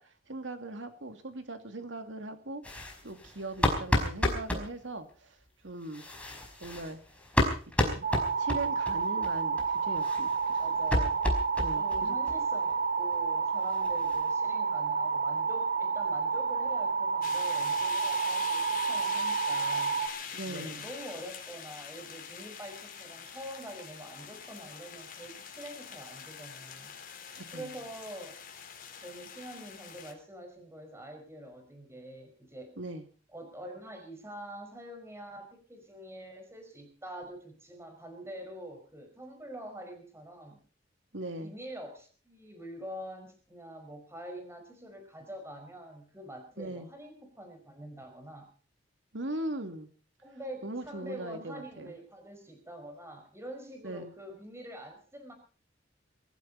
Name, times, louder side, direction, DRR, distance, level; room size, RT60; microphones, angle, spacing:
voice 1, 0.0-5.4 5.6-6.0 6.6-7.0 7.8-8.1 8.4-10.6 11.6-12.2 20.3-20.8 27.3-27.8 32.8-33.0 41.1-41.5 46.6-46.9 49.1-49.9 50.6-51.9 53.8-54.1, right 2 dB, 75° right, 7 dB, 2.6 m, -40 dB
sound 1, 2.6-4.7 5.8-8.9 9.2-9.3 9.6-9.7 10.0-12.0 12.3-12.4 12.7-12.8 13.1-13.2 13.5-14.3, left 1 dB, 5° left, 4.9 m, -31 dB
sound 2, 8.0-20.1, right 5 dB, 60° right, 2.6 m, -30 dB
voice 2, 10.6-11.2 11.7-20.0 20.4-26.9 27.5-28.7 29.0-32.7 33.3-40.6 41.4-48.5 50.2-55.3, right 1 dB, 15° right, 5 dB, 5.3 m, -45 dB
sound 3, 17.2-30.1, left 7 dB, 50° left, 4.1 m, -44 dB
23.0 x 15.0 x 4.2 m, 0.39 s
head